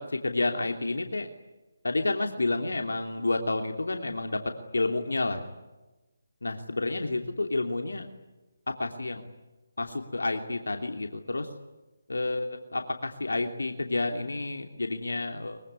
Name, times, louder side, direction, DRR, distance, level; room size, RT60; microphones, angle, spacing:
voice 1, 0.1-1.3 1.8-4.4 4.7-5.4 6.4-8.1 8.8-9.2 9.8-11.5 12.1-15.6, left 2 dB, 85° left, 4 dB, 3.0 m, -30 dB
23.5 x 23.5 x 10.0 m, 1.1 s
figure-of-eight pair, 160°, 0 cm